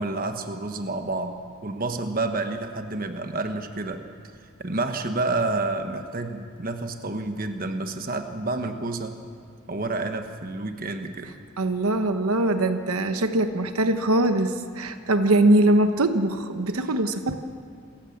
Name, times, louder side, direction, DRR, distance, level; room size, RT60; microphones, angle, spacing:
voice 1, 0.0-4.1 4.6-9.1 9.7-11.4, right 2 dB, 40° right, 6 dB, 1.2 m, -29 dB
voice 2, 11.6-17.4, right 1 dB, 80° right, 8 dB, 1.1 m, -22 dB
27.5 x 15.0 x 7.3 m, 2.1 s
head